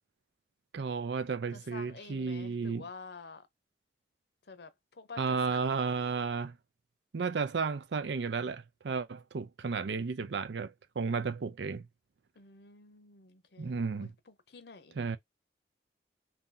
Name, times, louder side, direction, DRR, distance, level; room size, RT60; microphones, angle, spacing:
voice 1, 0.7-2.9 5.2-6.6 7.1-11.9 13.6-14.1 14.9-15.2, right 5 dB, 75° right, 0.5 m, -33 dB
voice 2, 1.5-3.5 4.5-5.8 12.4-15.0, left 4 dB, 65° left, 0.7 m, -49 dB
2.8 x 2.7 x 3.8 m
head